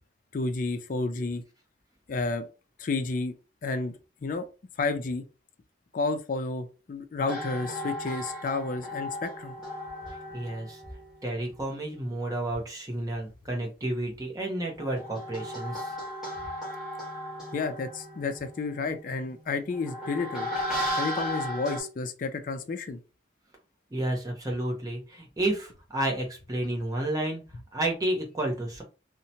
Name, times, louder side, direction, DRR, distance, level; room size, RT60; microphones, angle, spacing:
voice 1, 0.3-1.4 2.1-2.5 2.8-3.3 3.6-3.9 4.2-4.5 4.8-5.2 5.9-9.5 17.5-20.5 21.0-23.0, left 3 dB, 45° left, 0.3 m, -31 dB
sound 1, 7.2-12.2 14.4-21.8, equal, 5° right, 1.1 m, -36 dB
voice 2, 10.3-10.8 11.2-16.0 23.9-27.4 27.7-28.8, right 1 dB, 20° right, 0.7 m, -31 dB
2.7 x 2.1 x 2.7 m
head